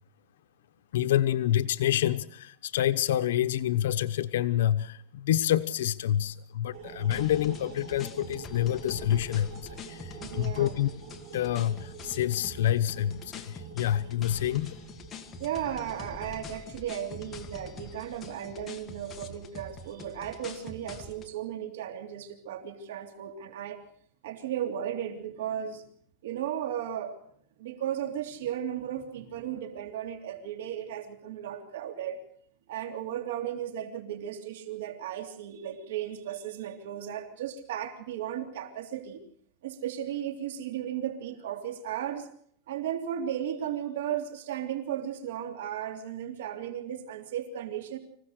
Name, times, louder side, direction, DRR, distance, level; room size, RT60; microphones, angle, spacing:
voice 1, 0.9-10.9 11.3-14.7, left 12 dB, 85° left, 10 dB, 0.9 m, -27 dB
sound 1, 6.7-17.7, right 6 dB, 40° right, 7.8 m, -48 dB
sound 2, 7.1-21.3, left 3 dB, 20° left, 1.9 m, -45 dB
voice 2, 10.2-10.7 14.4-14.5 15.4-23.8 24.2-25.8 26.2-27.2 27.6-32.2 32.7-39.2 39.6-42.3 42.7-48.0, right 10 dB, 80° right, 6 dB, 3.2 m, -35 dB
26.0 x 16.5 x 6.5 m, 0.63 s
supercardioid pair, 160°, 0 cm